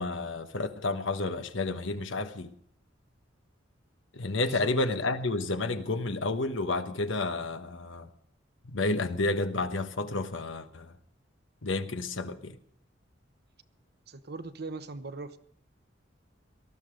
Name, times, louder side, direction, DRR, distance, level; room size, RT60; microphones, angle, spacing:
voice 1, 0.0-2.5 4.1-8.1 8.6-10.9 11.6-12.6, left 2 dB, 75° left, 1.2 m, -30 dB
voice 2, 14.1-15.4, right 3 dB, 55° right, 0.9 m, -40 dB
19.0 x 13.0 x 5.1 m
head